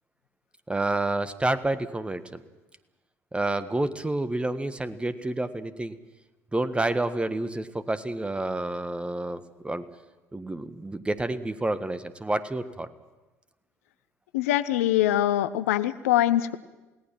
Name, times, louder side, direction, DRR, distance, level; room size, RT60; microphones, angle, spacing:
voice 1, 0.7-2.4 3.3-5.9 6.5-9.8 10.3-12.9, right 2 dB, 15° right, 12 dB, 1.5 m, -29 dB
voice 2, 14.3-16.6, left 13 dB, 75° left, 14 dB, 0.7 m, -23 dB
29.0 x 18.0 x 6.0 m, 1.1 s
figure-of-eight pair, 55°, 8 cm